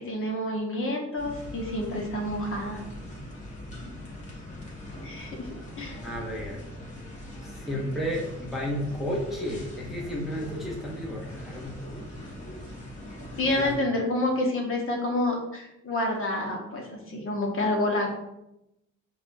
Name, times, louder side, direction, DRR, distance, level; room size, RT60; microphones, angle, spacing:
voice 1, 0.0-2.8 5.0-5.5 5.8-6.0 13.4-18.3, left 1 dB, 45° left, 0 dB, 0.9 m, -28 dB
sound 1, 1.2-13.8, left 1 dB, 25° left, 1.2 m, -41 dB
voice 2, 6.0-6.6 7.4-11.8 13.5-13.8, equal, ahead, -3 dB, 0.6 m, -33 dB
4.9 x 2.3 x 2.5 m, 0.87 s
cardioid pair, 90°, 30 cm